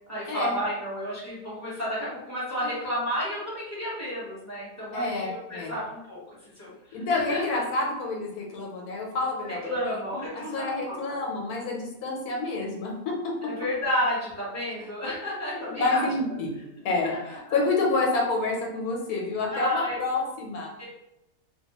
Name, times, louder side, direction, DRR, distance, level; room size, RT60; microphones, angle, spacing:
voice 1, 0.1-6.2 6.6-7.4 9.6-11.0 13.4-16.1 17.0-17.5 19.5-20.0 20.8-20.9, equal, 15° left, -8 dB, 0.9 m, -31 dB
voice 2, 4.9-5.7 6.9-10.0 10.3-13.3 15.5-16.6 16.8-20.7, left 3 dB, 80° left, 0 dB, 1.2 m, -28 dB
2.6 x 2.2 x 2.8 m, 0.90 s
omnidirectional pair, 1.5 m